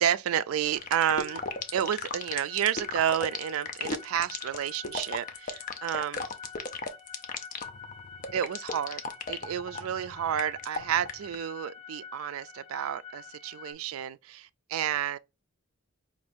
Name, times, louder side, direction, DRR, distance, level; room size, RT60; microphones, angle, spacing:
voice 1, 0.0-1.4 1.7-6.3 8.3-9.0 9.3-15.2, right 9 dB, 75° right, 0.3 m, -30 dB
sound 1, 0.6-13.7, left 6 dB, 65° left, 1.4 m, -47 dB
sound 2, 0.8-11.4, left 4 dB, 40° left, 0.5 m, -35 dB
4.9 x 2.6 x 3.4 m
head